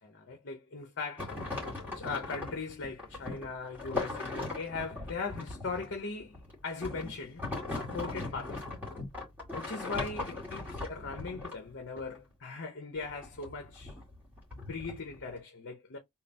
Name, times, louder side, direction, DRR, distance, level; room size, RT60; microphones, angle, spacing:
voice 1, 0.0-1.5 1.9-8.8 9.5-13.9 14.6-16.0, left 4 dB, 55° left, 0.8 m, -39 dB
sound 1, 1.2-12.2 13.0-15.4, left 2 dB, 10° right, 2.0 m, -39 dB
3.8 x 2.0 x 4.1 m
head